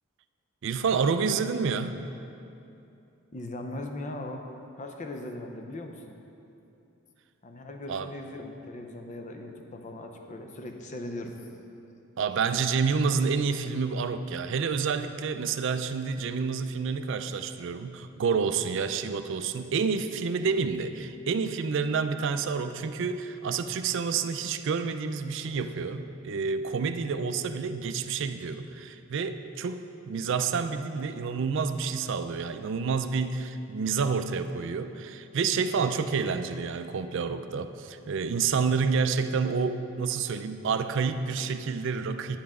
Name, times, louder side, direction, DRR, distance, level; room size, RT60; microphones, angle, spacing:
voice 1, 0.6-2.0 7.9-8.1 12.2-42.4, right 5 dB, 60° right, 9 dB, 0.4 m, -29 dB
voice 2, 3.3-4.4 4.8-6.2 7.4-11.4 18.6-18.8, left 1 dB, 35° left, 4 dB, 0.6 m, -39 dB
10.0 x 7.9 x 3.6 m, 2.7 s
head